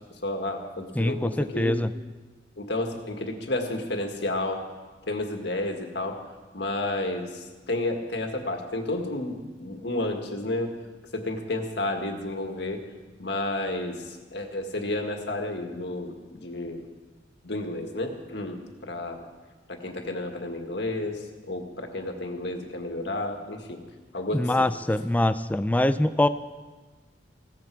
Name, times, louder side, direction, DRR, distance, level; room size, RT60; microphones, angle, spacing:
voice 1, 0.2-1.8 2.6-4.6 5.1-6.2 6.5-10.7 11.1-12.8 13.2-16.8 17.4-19.2 19.7-23.8 24.1-24.7, left 2 dB, 65° left, 4 dB, 1.8 m, -31 dB
voice 2, 1.0-1.9 24.3-26.3, left 1 dB, 10° left, 12 dB, 0.4 m, -24 dB
16.5 x 14.5 x 4.7 m, 1.3 s
head